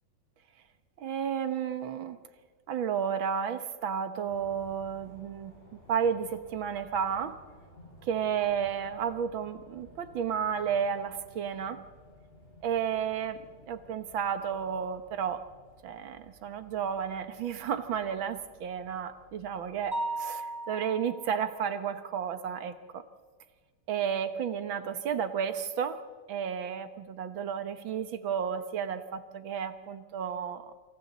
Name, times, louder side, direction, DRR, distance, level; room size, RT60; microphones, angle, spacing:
voice 1, 1.0-2.2 2.7-5.5 5.9-7.4 8.0-11.8 12.6-13.4 13.7-15.5 15.8-23.0 23.9-26.0 26.3-30.7, right 7 dB, 75° right, 10 dB, 2.0 m, -32 dB
sound 1, 4.3-19.9, left 1 dB, 30° left, 7.4 m, -56 dB
Mallet percussion, 19.9-21.7, right 2 dB, 25° right, 1.4 m, -36 dB
28.0 x 26.5 x 4.2 m, 1.5 s
omnidirectional pair, 2.2 m